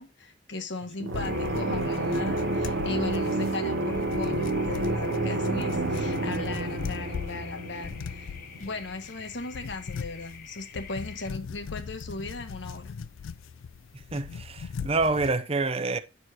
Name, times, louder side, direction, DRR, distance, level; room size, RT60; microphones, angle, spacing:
voice 1, 0.0-13.0, left 3 dB, 60° left, 1.3 m, -38 dB
sound 1, 1.0-8.7, right 2 dB, 65° right, 0.7 m, -29 dB
sound 2, 1.1-15.4, left 6 dB, 80° left, 0.4 m, -39 dB
sound 3, 1.2-11.3, left 6 dB, 45° left, 1.1 m, -48 dB
voice 2, 14.1-16.0, right 3 dB, 30° right, 0.5 m, -27 dB
9.7 x 6.3 x 2.9 m
head